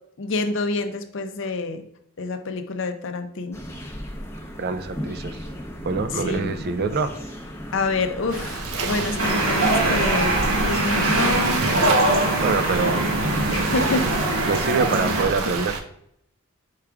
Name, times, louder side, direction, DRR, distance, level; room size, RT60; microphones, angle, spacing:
voice 1, 0.2-1.8 2.2-3.6 6.1-6.6 7.7-10.3 10.6-11.7 13.5-14.0, left 3 dB, 55° left, 7 dB, 0.5 m, -27 dB
sound 1, 3.5-9.3, equal, 10° left, 0.6 m, -36 dB
voice 2, 4.6-5.4 5.8-7.2 12.4-13.0 13.5-13.7 14.5-15.8, right 4 dB, 45° right, 10 dB, 0.3 m, -25 dB
Waves surf, 8.3-15.8, right 3 dB, 85° right, 0.7 m, -29 dB
sound 2, 9.2-15.2, right 2 dB, 60° right, 1.3 m, -22 dB
4.8 x 4.7 x 2.3 m, 0.73 s
head